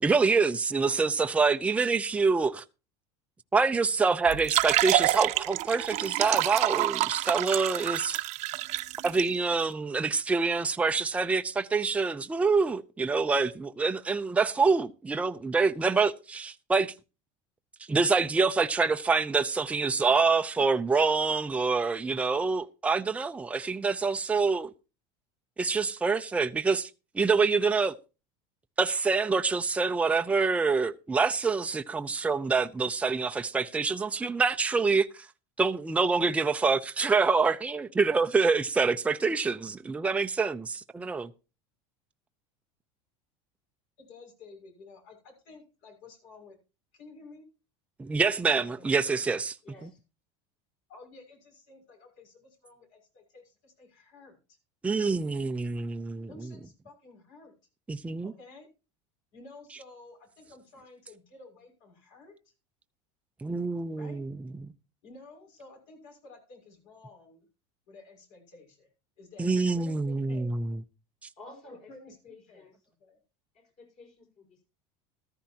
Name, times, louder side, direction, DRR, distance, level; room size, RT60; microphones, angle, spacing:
voice 1, 0.0-2.6 3.5-8.2 9.0-16.9 17.9-24.7 25.6-26.9 27.1-28.0 28.8-35.3 35.6-41.3 48.0-49.5 54.8-56.3 57.9-58.3 63.4-64.3 64.6-64.7 69.4-70.8, right 4 dB, 10° right, 0.5 m, -26 dB
sound 1, 4.3-9.2, right 17 dB, 50° right, 0.8 m, -28 dB
voice 2, 44.0-46.6 46.9-47.5 48.5-49.4 50.9-54.6 56.3-57.5 58.2-58.7 59.3-62.5 64.0-64.2 65.0-67.5 67.9-68.9 69.2-70.6 71.9-72.7 73.0-73.2, left 3 dB, 65° left, 6.4 m, -52 dB
voice 3, 49.6-50.0 71.4-71.9 72.3-72.8 73.5-74.6, left 2 dB, 45° left, 5.6 m, -51 dB
14.0 x 13.5 x 2.9 m
supercardioid pair, 135°, 15 cm